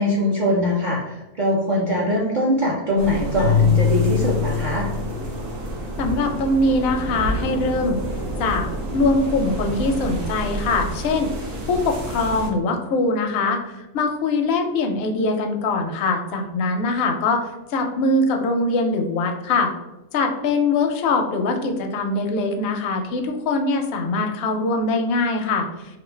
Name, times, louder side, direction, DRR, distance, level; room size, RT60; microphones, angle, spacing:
voice 1, 0.0-4.9, equal, 50° right, -5 dB, 0.6 m, -22 dB
sound 1, 3.0-12.5, right 1 dB, 75° right, 1.1 m, -29 dB
Keyboard (musical), 3.4-5.6, left 8 dB, 80° left, 1.0 m, -22 dB
voice 2, 6.0-8.0 8.4-8.7 8.9-11.3 11.7-17.4 17.7-19.7 20.1-25.7, left 3 dB, 65° left, 3 dB, 0.7 m, -22 dB
3.0 x 2.5 x 3.2 m, 0.97 s
omnidirectional pair, 1.4 m